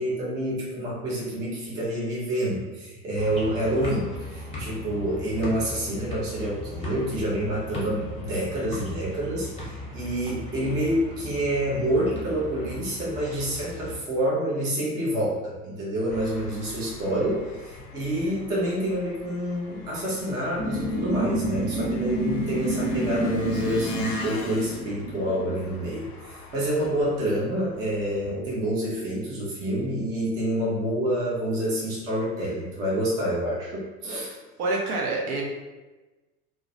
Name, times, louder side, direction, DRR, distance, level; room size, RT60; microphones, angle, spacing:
voice 1, 0.0-34.3, right 1 dB, 10° right, -7 dB, 0.3 m, -28 dB
sound 1, 3.1-14.0, left 1 dB, 15° left, 0.8 m, -38 dB
Engine, 16.1-28.3, left 3 dB, 65° left, 0.6 m, -43 dB
sound 2, 20.6-25.5, right 1 dB, 35° right, 0.7 m, -29 dB
voice 2, 34.2-35.4, right 2 dB, 70° right, -1 dB, 0.7 m, -28 dB
2.2 x 2.1 x 2.7 m, 1.2 s
figure-of-eight pair, 80°, 47 cm